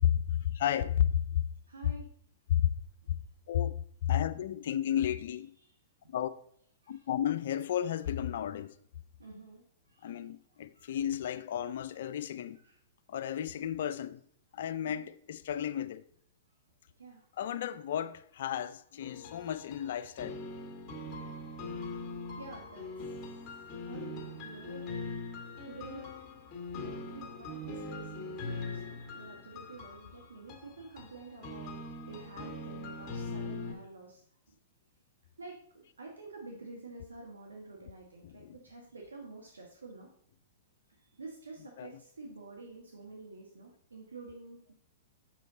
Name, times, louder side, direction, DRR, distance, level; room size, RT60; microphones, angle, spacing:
voice 1, 0.0-1.4 1.8-1.9 2.5-2.7 3.1-3.2 3.5-5.5 6.1-6.3 6.9-8.7 10.0-12.6 13.1-14.2 14.5-16.0 17.4-20.4 38.2-38.6 41.8-42.0, left 10 dB, 60° left, 0.4 m, -32 dB
voice 2, 1.7-2.1 5.6-5.7 6.8-7.0 9.2-10.1 10.7-11.0 12.6-12.8 14.8-15.1 17.0-17.2 21.1-21.4 22.4-22.8 23.8-24.8 25.6-26.1 26.8-31.8 32.1-34.2 35.4-40.1 41.2-44.7, right 3 dB, 80° right, 1.3 m, -49 dB
sound 1, 19.0-33.7, left 2 dB, 25° left, 2.0 m, -42 dB
6.4 x 6.2 x 4.0 m
figure-of-eight pair, 110°, 0 cm